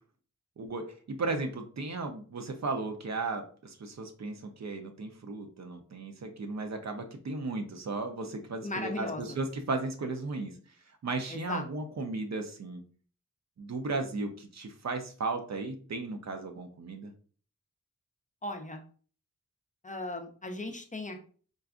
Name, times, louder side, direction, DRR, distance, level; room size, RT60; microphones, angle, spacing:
voice 1, 0.6-10.5 11.0-12.8 13.6-17.1, right 3 dB, 60° right, 5 dB, 0.6 m, -35 dB
voice 2, 8.6-9.2 11.3-11.6 18.4-18.8 19.8-21.2, left 2 dB, 25° left, 4 dB, 0.5 m, -37 dB
3.9 x 2.3 x 2.4 m, 0.42 s
wide cardioid pair, 100°, 31 cm